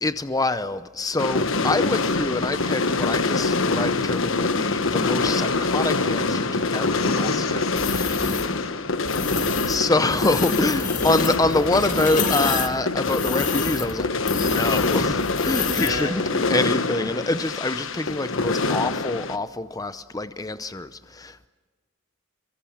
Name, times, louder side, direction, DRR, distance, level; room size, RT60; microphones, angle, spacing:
voice 1, 0.0-8.3 9.7-21.5, left 2 dB, 15° left, 0.7 m, -26 dB
sound 1, 1.2-19.4, left 3 dB, 65° left, 1.3 m, -25 dB
voice 2, 6.8-8.8 15.7-16.1, left 3 dB, 80° left, 3.9 m, -33 dB
sound 2, 7.8-8.5 9.1-9.8 10.1-16.0, left 4 dB, 40° left, 2.2 m, -29 dB
28.0 x 23.5 x 7.3 m
head